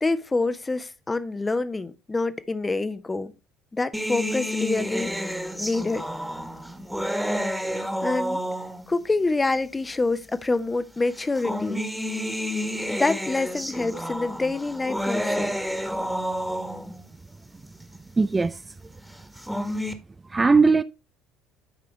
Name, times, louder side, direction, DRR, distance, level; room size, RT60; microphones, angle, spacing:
voice 1, 0.0-3.3 3.7-6.0 8.0-8.4 8.9-11.8 12.9-15.6, left 3 dB, 20° left, 0.9 m, -26 dB
sound 1, 3.9-9.0 9.9-10.0 11.1-17.0 19.2-19.9, equal, 5° right, 1.5 m, -30 dB
voice 2, 18.2-18.6 20.3-20.8, right 4 dB, 20° right, 0.4 m, -19 dB
12.0 x 4.9 x 3.2 m
hypercardioid pair, 60°, 0 cm